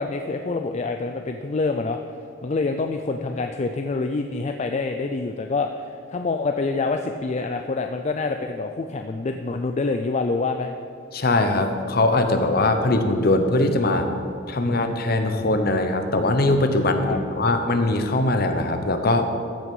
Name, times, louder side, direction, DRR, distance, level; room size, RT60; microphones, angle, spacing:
voice 1, 0.0-2.0 2.4-10.7 17.0-17.2, left 3 dB, 35° left, 5 dB, 0.4 m, -26 dB
voice 2, 11.1-14.1 14.5-19.3, left 2 dB, 50° left, 6 dB, 0.9 m, -21 dB
14.0 x 6.0 x 5.4 m, 2.5 s
head